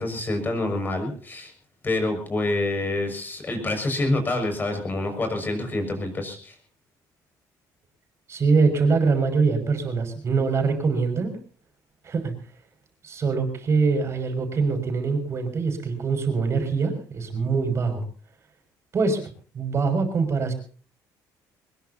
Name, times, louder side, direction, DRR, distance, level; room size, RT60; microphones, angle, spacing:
voice 1, 0.0-1.5 1.8-6.5, left 2 dB, 25° left, 5 dB, 6.3 m, -27 dB
voice 2, 8.3-11.3 12.0-12.3 13.0-18.0 18.9-19.2 19.5-20.5, right 4 dB, 40° right, 5 dB, 6.2 m, -23 dB
22.5 x 21.5 x 2.9 m, 0.40 s
cardioid pair, 125°, 8 cm